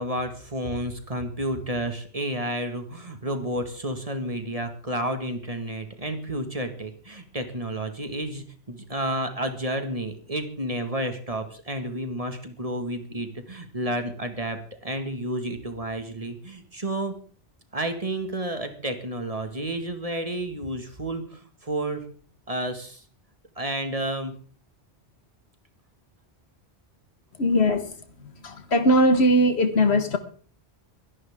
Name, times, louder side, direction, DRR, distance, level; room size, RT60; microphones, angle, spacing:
voice 1, 0.0-17.1 17.7-22.0 22.5-23.0 23.6-24.3, right 1 dB, 35° right, 1.9 m, -31 dB
voice 2, 27.4-27.9 28.4-30.2, equal, 70° left, 1.8 m, -20 dB
23.5 x 11.0 x 3.7 m
omnidirectional pair, 1.1 m